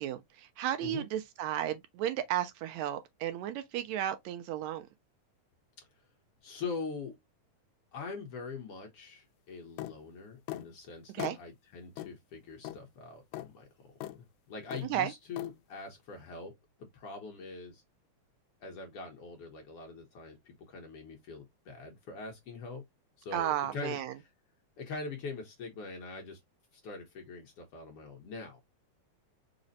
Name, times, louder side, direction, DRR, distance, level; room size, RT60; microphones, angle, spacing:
voice 1, 0.0-4.9 11.1-11.4 14.8-15.1 23.3-24.2, right 11 dB, 80° right, 1.8 m, -34 dB
voice 2, 6.4-7.2 7.9-16.5 16.9-17.8 18.6-22.8 23.2-24.0 24.8-26.4 26.7-28.6, left 4 dB, 65° left, 1.6 m, -43 dB
sound 1, 9.8-10.0 10.5-10.7 11.2-11.4 12.0-12.1 12.6-12.8 13.3-13.5 14.0-14.2 14.7-14.9 15.4-15.5, left 14 dB, 80° left, 1.8 m, -39 dB
5.0 x 2.1 x 3.9 m
omnidirectional pair, 3.4 m